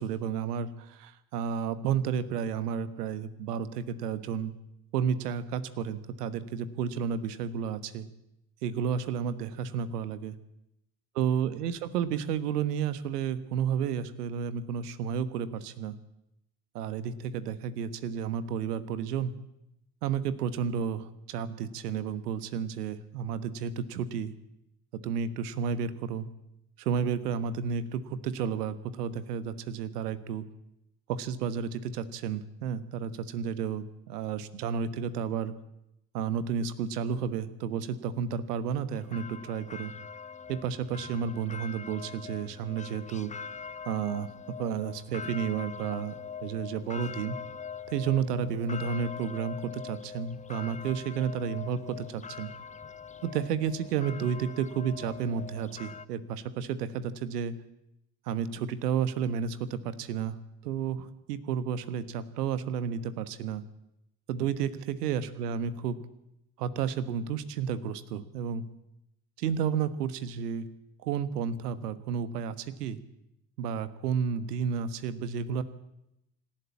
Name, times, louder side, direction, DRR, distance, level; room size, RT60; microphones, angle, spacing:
voice 1, 0.0-4.5 4.9-8.1 8.6-10.4 11.1-16.0 16.7-19.3 20.0-24.3 25.0-26.3 26.8-30.5 31.1-35.5 36.1-39.9 40.5-43.3 43.9-46.2 46.4-47.4 47.9-52.5 53.2-57.5 58.3-60.4 60.6-63.6 64.3-66.0 66.6-68.6 69.4-70.7 71.0-73.0 73.6-75.6, right 7 dB, 75° right, 14 dB, 1.4 m, -32 dB
sound 1, 38.9-56.1, left 6 dB, 15° left, 0.7 m, -43 dB
25.5 x 12.0 x 8.6 m, 0.86 s
figure-of-eight pair, 55°, 48 cm